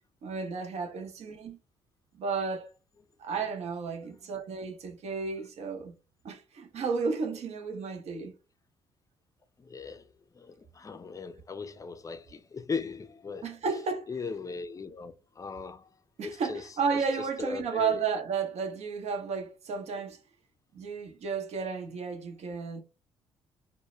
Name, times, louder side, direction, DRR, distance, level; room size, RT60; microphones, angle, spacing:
voice 1, 0.2-1.6 2.1-2.7 3.2-6.0 6.2-8.3 13.4-14.1 16.2-20.2 20.7-22.8, right 5 dB, 55° right, 0.7 m, -33 dB
voice 2, 9.6-13.5 14.1-15.9 16.2-16.7 17.2-18.0, left 4 dB, 25° left, 0.4 m, -38 dB
2.2 x 2.1 x 3.0 m
hypercardioid pair, 50°, 13 cm